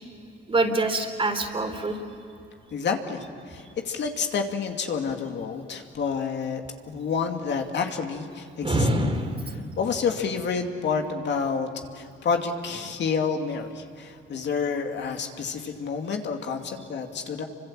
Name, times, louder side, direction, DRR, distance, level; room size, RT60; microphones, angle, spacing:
voice 1, 0.5-2.0 8.6-9.6, right 2 dB, 25° right, 4 dB, 3.9 m, -25 dB
voice 2, 2.7-6.6 6.9-8.9 9.8-11.7 11.9-17.4, left 5 dB, 60° left, 3 dB, 2.5 m, -29 dB
28.5 x 25.0 x 7.6 m, 2.6 s
cardioid pair, 90°, 20 cm